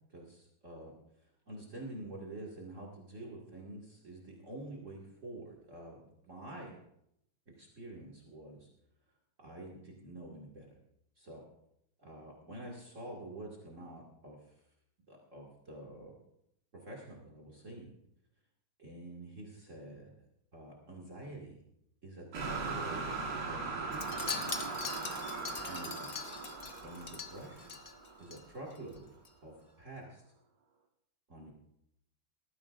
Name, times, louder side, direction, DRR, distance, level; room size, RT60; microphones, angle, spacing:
voice 1, 0.1-0.9 1.2-6.7 7.5-8.7 9.4-10.7 11.2-11.4 12.0-14.4 15.1-16.1 16.7-17.9 18.8-20.1 20.5-21.6 22.0-23.2 23.5-24.4 25.7-26.1 26.8-27.7 28.2-29.1 29.4-30.2 31.3-31.5, right 2 dB, 40° right, -1 dB, 2.4 m, -47 dB
sound 1, 22.3-28.4, right 4 dB, 55° right, 2.3 m, -39 dB
Wind chime, 23.9-28.4 28.7-29.0 29.2-29.3, left 5 dB, 40° left, 0.9 m, -42 dB
18.5 x 14.5 x 2.6 m, 0.77 s
omnidirectional pair, 2.2 m